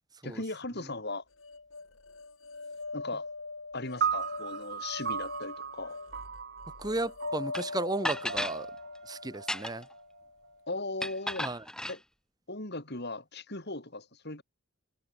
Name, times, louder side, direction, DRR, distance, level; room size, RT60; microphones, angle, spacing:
voice 1, 0.2-1.2 2.9-3.3 3.7-6.0 10.7-11.5 11.9-12.0 12.5-14.4, left 2 dB, 50° left, 4.3 m, -38 dB
sound 1, 1.4-10.6, left 3 dB, 65° left, 2.6 m, -42 dB
sound 2, 4.0-10.5, right 7 dB, 50° right, 1.1 m, -37 dB
voice 2, 6.8-8.7 9.1-9.8 11.4-11.6, right 2 dB, 20° right, 1.1 m, -34 dB
sound 3, 7.5-7.6 8.0-8.6 9.3-9.9 11.0-12.0, left 1 dB, 5° left, 2.7 m, -34 dB
head